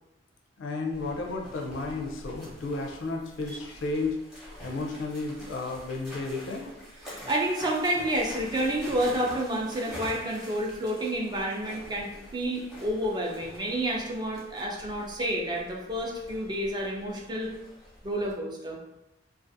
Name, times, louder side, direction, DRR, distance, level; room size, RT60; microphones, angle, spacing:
voice 1, 0.6-4.2 4.6-6.7, left 3 dB, 80° left, 2 dB, 0.4 m, -33 dB
sound 1, 0.9-18.3, equal, 5° right, 0.8 m, -45 dB
voice 2, 7.3-17.5 18.0-18.8, right 1 dB, 20° right, -1 dB, 0.4 m, -29 dB
2.4 x 2.3 x 2.6 m, 0.90 s
head